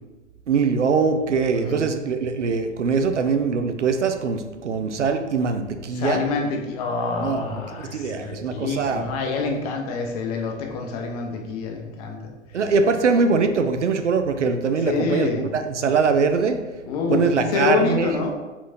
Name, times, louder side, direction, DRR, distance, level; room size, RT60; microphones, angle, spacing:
voice 1, 0.5-6.2 7.2-7.6 7.9-9.1 12.5-16.6 17.1-18.1, right 5 dB, 80° right, 7 dB, 0.5 m, -22 dB
voice 2, 6.0-12.3 14.8-15.5 16.9-18.4, left 4 dB, 35° left, 2 dB, 0.6 m, -26 dB
4.5 x 3.6 x 2.6 m, 1.2 s
figure-of-eight pair, 105°, 36 cm